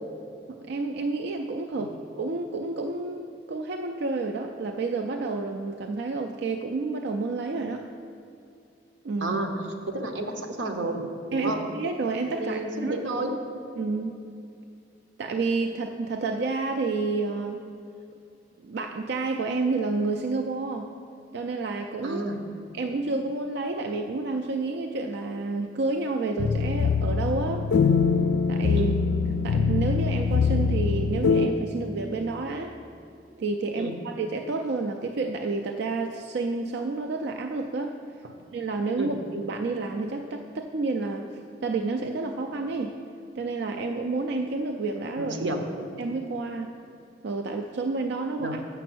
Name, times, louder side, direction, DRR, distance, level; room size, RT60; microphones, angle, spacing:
voice 1, 0.5-7.9 9.0-9.4 11.3-13.0 13.8-14.1 15.2-17.7 18.6-20.9 21.3-22.2 22.7-27.7 28.5-28.9 29.4-32.8 33.4-38.0 38.5-43.0 43.3-45.4 46.0-46.7 47.2-48.6, right 3 dB, 65° right, 4 dB, 0.4 m, -30 dB
voice 2, 9.2-9.5 9.9-11.0 11.3-11.6 12.4-13.4 22.0-22.4 28.7-28.9 33.8-33.9 39.0-39.1 45.2-45.6 48.4-48.6, right 2 dB, 90° right, 4 dB, 1.0 m, -30 dB
sound 1, 26.4-31.5, left 5 dB, 65° left, 0.4 m, -23 dB
6.9 x 6.8 x 6.1 m, 2.6 s
head